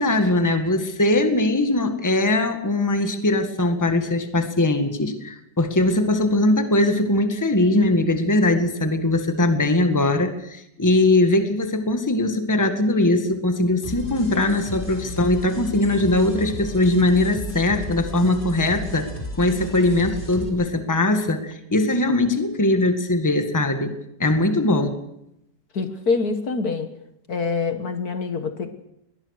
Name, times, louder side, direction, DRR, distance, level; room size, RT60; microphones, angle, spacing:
voice 1, 0.0-19.1 19.4-23.9 24.2-25.0, left 2 dB, 10° left, 8 dB, 1.7 m, -21 dB
sound 1, 13.8-20.5, left 1 dB, 25° left, 3.9 m, -34 dB
voice 2, 25.7-26.9 27.3-28.7, left 4 dB, 55° left, 9 dB, 1.9 m, -25 dB
22.0 x 19.5 x 6.6 m, 0.81 s
omnidirectional pair, 1.9 m